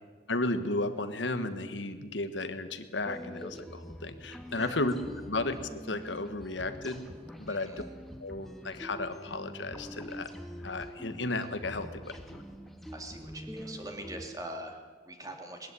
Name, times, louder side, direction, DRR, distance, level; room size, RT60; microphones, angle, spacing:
voice 1, 0.3-4.9 5.3-7.0 7.4-7.8 8.2-10.3 10.6-12.4, left 2 dB, 85° left, 9 dB, 1.4 m, -34 dB
sound 1, 3.0-14.2, equal, ahead, 1.6 m, -45 dB
voice 2, 7.5-7.9 12.9-15.7, right 1 dB, 20° right, 3 dB, 2.4 m, -43 dB
20.5 x 13.5 x 9.7 m, 1.5 s
head